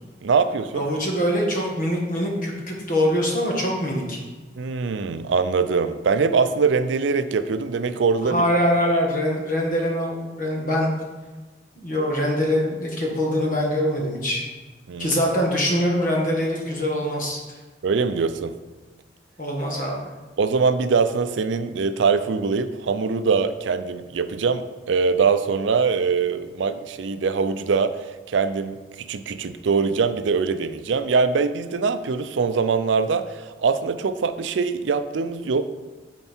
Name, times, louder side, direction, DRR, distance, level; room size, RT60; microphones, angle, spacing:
voice 1, 0.2-0.8 4.6-8.4 8.8-8.9 14.9-15.2 17.8-18.5 20.4-35.6, right 5 dB, 75° right, 11 dB, 0.4 m, -23 dB
voice 2, 0.7-4.2 8.2-10.9 11.8-14.4 15.0-17.4 19.4-20.1, equal, 45° left, -1 dB, 1.5 m, -23 dB
9.1 x 4.4 x 4.3 m, 1.3 s
head